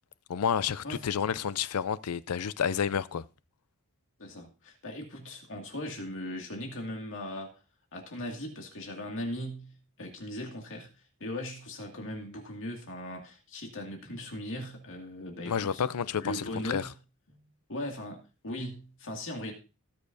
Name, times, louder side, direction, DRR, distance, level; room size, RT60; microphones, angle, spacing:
voice 1, 0.3-3.2 15.5-16.9, left 7 dB, 80° left, 0.5 m, -30 dB
voice 2, 4.2-7.6 7.9-10.9 11.2-15.8 16.2-16.9 17.3-19.5, left 1 dB, 60° left, 2.2 m, -39 dB
18.0 x 6.8 x 2.7 m
head